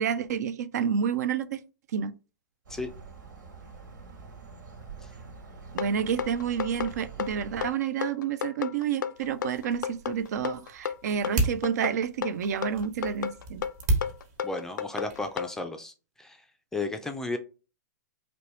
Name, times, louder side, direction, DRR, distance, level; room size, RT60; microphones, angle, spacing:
voice 1, 0.0-1.6 1.9-2.2 5.7-13.6, right 7 dB, 60° right, 0.5 m, -29 dB
sound 1, 2.7-7.7, right 5 dB, 80° right, 1.8 m, -45 dB
sound 2, 5.8-15.5, left 8 dB, 90° left, 0.4 m, -33 dB
sound 3, 9.1-15.5, right 2 dB, 35° right, 1.2 m, -34 dB
voice 2, 14.4-16.4 16.7-17.4, left 3 dB, 5° left, 0.4 m, -33 dB
4.4 x 3.0 x 3.1 m
hypercardioid pair, 150°, 10 cm